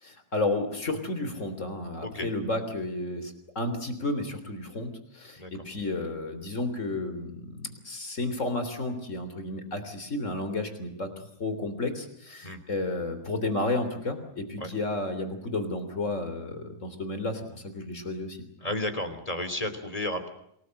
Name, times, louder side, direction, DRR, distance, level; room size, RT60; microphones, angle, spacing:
voice 1, 0.0-18.4, left 2 dB, 75° left, 9 dB, 3.8 m, -32 dB
voice 2, 18.6-20.3, left 1 dB, 30° left, 9 dB, 3.1 m, -32 dB
28.0 x 19.5 x 7.7 m, 0.75 s
omnidirectional pair, 1.3 m